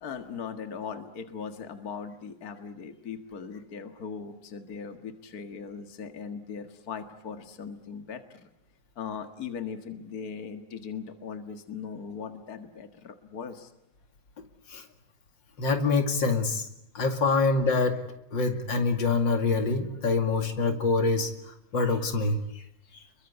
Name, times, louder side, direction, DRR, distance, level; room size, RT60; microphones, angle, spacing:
voice 1, 0.0-8.5 9.0-13.7, left 6 dB, 55° left, 8 dB, 2.2 m, -39 dB
voice 2, 15.6-16.7 16.9-18.0 18.3-22.6, left 3 dB, 85° left, 7 dB, 3.1 m, -25 dB
29.5 x 22.5 x 8.2 m, 0.82 s
omnidirectional pair, 2.0 m